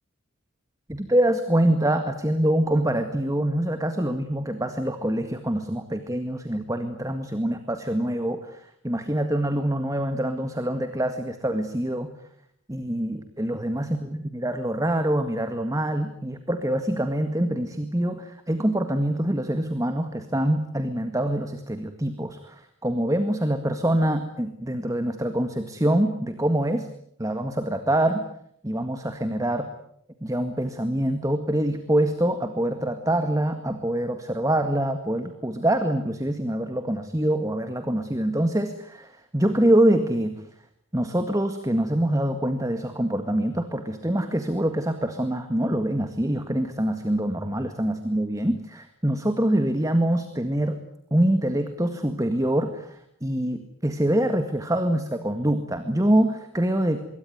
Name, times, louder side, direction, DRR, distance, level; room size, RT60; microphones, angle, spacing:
voice 1, 0.9-12.1 12.7-26.9 27.2-28.2 28.6-29.7 30.2-40.4 40.9-50.8 51.1-57.0, right 1 dB, 15° right, 8 dB, 1.9 m, -25 dB
25.5 x 22.5 x 9.5 m, 0.71 s
head